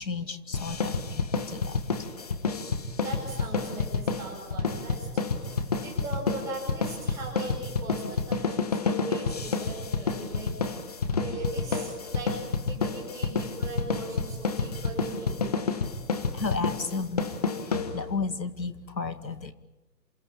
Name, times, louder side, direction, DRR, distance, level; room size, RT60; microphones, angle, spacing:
voice 1, 0.0-1.8 5.6-5.7 16.3-19.5, left 4 dB, 85° left, 10 dB, 2.2 m, -33 dB
sound 1, 0.5-18.3, left 4 dB, 25° left, 1.2 m, -29 dB
voice 2, 3.0-5.1 5.6-10.6 11.2-15.5 15.9-16.0, right 3 dB, 5° right, -2 dB, 5.0 m, -39 dB
28.0 x 17.5 x 8.8 m, 1.0 s
figure-of-eight pair, 160°, 50 cm